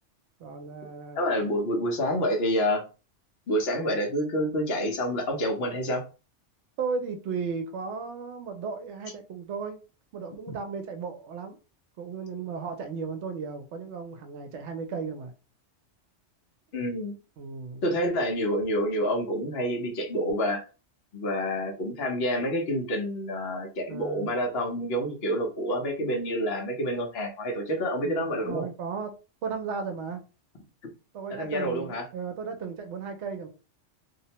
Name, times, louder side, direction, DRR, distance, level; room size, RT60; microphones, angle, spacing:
voice 1, 0.4-1.4 6.8-9.8 10.1-11.6 12.0-15.3 17.4-17.9 23.9-24.3 28.0-30.2 31.1-33.5, right 5 dB, 75° right, 0.8 m, -35 dB
voice 2, 1.2-2.8 3.5-6.0 16.7-17.2 17.8-20.6 21.1-28.7 31.4-32.0, equal, 60° left, 0.9 m, -28 dB
2.6 x 2.1 x 2.8 m
omnidirectional pair, 1.2 m